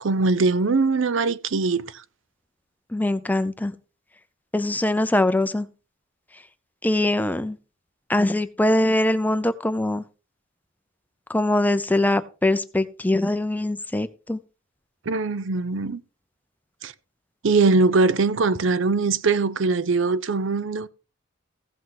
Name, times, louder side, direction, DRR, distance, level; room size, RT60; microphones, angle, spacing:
voice 1, 0.0-1.8 15.1-16.0 16.8-16.9 17.4-20.9, right 3 dB, 65° right, 0.6 m, -21 dB
voice 2, 2.9-3.7 4.5-5.7 6.3-6.4 6.8-7.6 8.1-10.0 11.3-14.4, left 1 dB, 10° left, 0.5 m, -22 dB
15.5 x 5.9 x 4.7 m
head